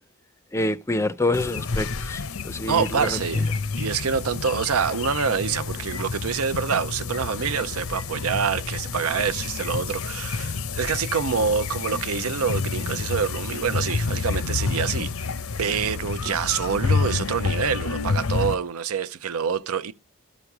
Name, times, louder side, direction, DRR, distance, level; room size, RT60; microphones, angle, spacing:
voice 1, 0.5-3.5, left 1 dB, 10° left, 0.5 m, -27 dB
sound 1, 1.3-18.5, left 4 dB, 75° left, 0.7 m, -29 dB
voice 2, 2.7-3.4 3.7-15.3 15.6-19.9, right 6 dB, 80° right, 0.6 m, -26 dB
13.5 x 5.1 x 5.9 m
head